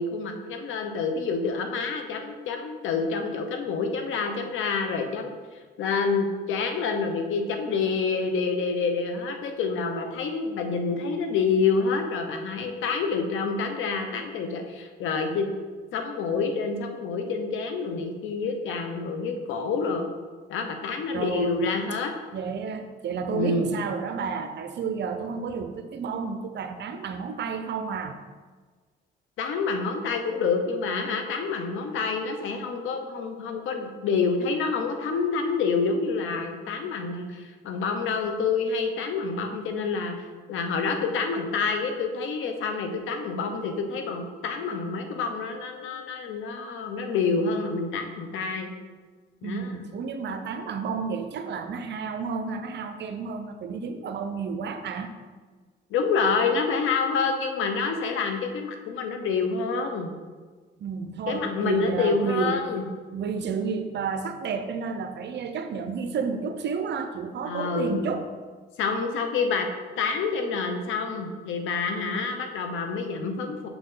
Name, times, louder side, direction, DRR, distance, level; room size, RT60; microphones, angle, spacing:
voice 1, 0.0-5.3 5.8-15.5 15.9-20.0 20.5-22.1 23.3-23.7 29.4-40.2 40.5-48.7 49.4-49.8 55.9-60.1 61.3-62.9 67.4-68.0 68.8-69.7 70.0-73.7, left 4 dB, 85° left, 5 dB, 0.9 m, -27 dB
voice 2, 21.1-21.6 22.3-28.2 49.4-55.1 60.8-62.7 63.1-68.3, right 5 dB, 60° right, 8 dB, 0.7 m, -31 dB
6.5 x 6.0 x 3.8 m, 1.4 s
cardioid pair, 90°, 20 cm